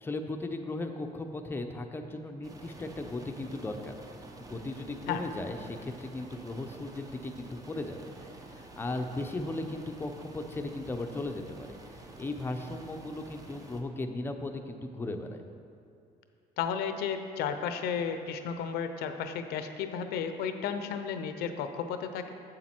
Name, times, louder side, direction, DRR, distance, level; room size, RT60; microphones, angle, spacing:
voice 1, 0.0-8.0 8.4-15.4, left 2 dB, 15° left, 4 dB, 0.6 m, -37 dB
sound 1, 2.4-13.8, right 2 dB, 20° right, 0.8 m, -49 dB
voice 2, 16.6-22.3, left 7 dB, 85° left, 8 dB, 0.6 m, -33 dB
7.9 x 7.4 x 4.4 m, 2.4 s
cardioid pair, 120°, 16 cm